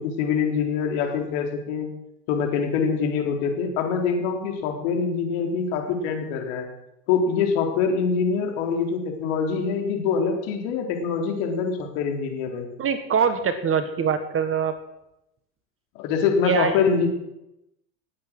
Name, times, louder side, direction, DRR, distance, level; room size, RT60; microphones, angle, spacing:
voice 1, 0.0-1.9 2.3-6.7 7.1-12.7 16.0-17.1, left 6 dB, 55° left, 3 dB, 4.1 m, -24 dB
voice 2, 12.8-14.7 16.4-16.7, right 6 dB, 25° right, 10 dB, 1.5 m, -23 dB
19.0 x 8.5 x 6.3 m, 0.86 s
hypercardioid pair, 100°, 49 cm